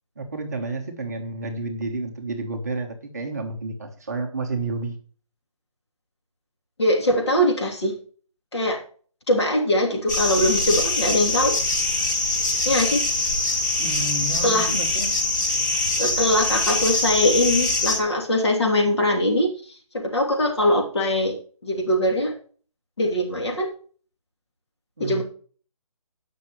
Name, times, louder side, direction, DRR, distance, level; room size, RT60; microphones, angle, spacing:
voice 1, 0.2-5.0 13.8-15.2 25.0-25.2, right 2 dB, 30° right, 3 dB, 1.2 m, -30 dB
voice 2, 6.8-7.9 8.5-8.8 9.3-11.6 12.6-13.0 14.4-14.7 16.0-19.5 19.9-21.3 21.6-22.3 23.0-23.7 25.0-25.2, left 1 dB, 50° left, 1 dB, 3.1 m, -21 dB
sound 1, 10.1-18.0, left 2 dB, 30° left, 2.1 m, -23 dB
18.0 x 6.1 x 3.2 m, 0.42 s
hypercardioid pair, 175°, 18 cm